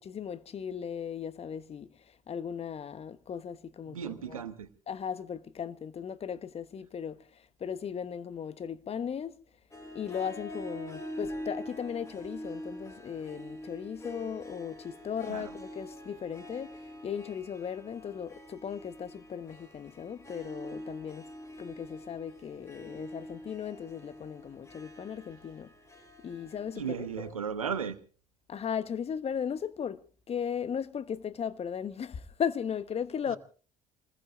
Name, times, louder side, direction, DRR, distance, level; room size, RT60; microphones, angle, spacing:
voice 1, 0.0-4.4 4.9-9.3 9.9-21.3 21.6-25.7 26.2-27.3 28.5-30.0 30.3-33.4, left 7 dB, 35° left, 1.1 m, -37 dB
voice 2, 3.9-4.7 15.3-15.5 26.7-28.0 33.3-33.4, right 7 dB, 85° right, 1.2 m, -35 dB
Harp, 9.7-27.3, equal, 20° left, 5.9 m, -45 dB
27.5 x 20.5 x 2.5 m
figure-of-eight pair, 55°, 17 cm